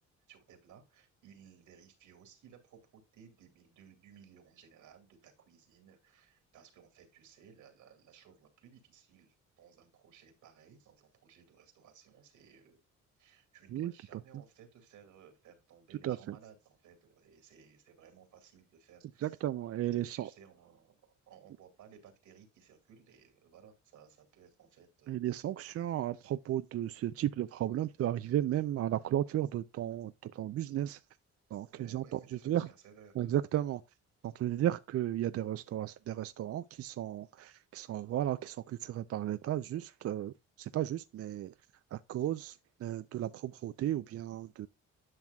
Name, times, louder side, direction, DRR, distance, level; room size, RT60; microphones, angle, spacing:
voice 1, 0.3-12.8 13.2-19.4 20.0-25.3 31.7-33.3, right 7 dB, 80° right, 2.4 m, -59 dB
voice 2, 13.7-14.2 16.0-16.3 19.2-20.3 25.1-31.0 31.5-32.7 33.2-33.8 34.2-41.5 41.9-44.7, right 12 dB, 50° right, 0.4 m, -34 dB
10.5 x 6.1 x 2.3 m
cardioid pair, 90°, 30 cm